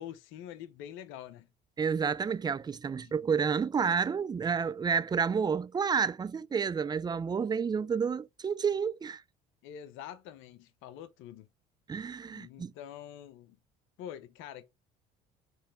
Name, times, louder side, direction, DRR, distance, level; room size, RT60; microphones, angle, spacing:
voice 1, 0.0-1.5 3.0-3.2 9.6-11.5 11.9-12.0 12.3-13.6 14.0-14.6, left 10 dB, 70° left, 0.8 m, -45 dB
voice 2, 1.8-9.2 11.9-12.7, right 6 dB, 20° right, 0.4 m, -30 dB
4.3 x 3.2 x 3.6 m
hypercardioid pair, 75°, 21 cm